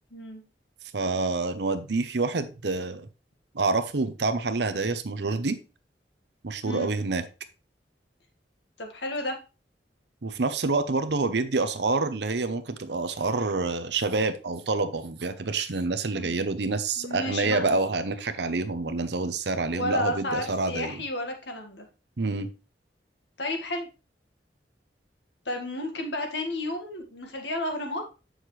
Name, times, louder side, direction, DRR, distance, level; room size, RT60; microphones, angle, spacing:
voice 1, 0.1-0.4 6.6-6.9 8.8-9.4 16.1-16.4 17.0-17.8 19.7-21.8 23.4-23.9 25.4-28.1, left 1 dB, 80° left, 4 dB, 1.8 m, -32 dB
voice 2, 0.9-3.1 3.5-5.6 6.4-7.2 10.2-21.0 22.2-22.5, right 3 dB, 70° right, 11 dB, 0.7 m, -27 dB
7.7 x 6.5 x 3.2 m, 0.31 s
head